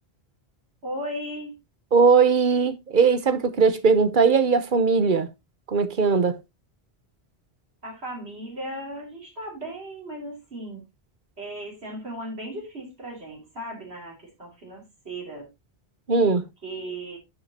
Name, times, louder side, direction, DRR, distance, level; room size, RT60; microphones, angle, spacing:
voice 1, 0.8-1.6 7.8-10.8 11.4-15.5 16.6-17.2, right 1 dB, 80° right, 3.3 m, -36 dB
voice 2, 1.9-5.3 5.7-6.4 16.1-16.5, right 5 dB, 50° right, 1.1 m, -19 dB
11.5 x 6.5 x 2.8 m
omnidirectional pair, 1.1 m